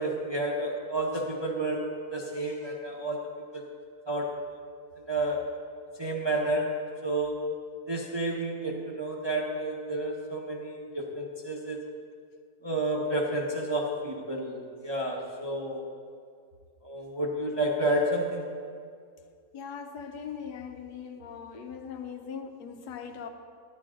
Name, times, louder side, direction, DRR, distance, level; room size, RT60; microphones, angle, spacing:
voice 1, 0.0-3.6 4.1-4.4 5.1-5.4 6.0-7.4 7.9-11.8 12.6-14.6 14.8-15.8 16.8-18.4, right 1 dB, 25° right, -2 dB, 0.6 m, -30 dB
voice 2, 19.5-23.3, left 7 dB, 85° left, 6 dB, 1.3 m, -40 dB
10.5 x 9.9 x 3.7 m, 2.2 s
omnidirectional pair, 1.7 m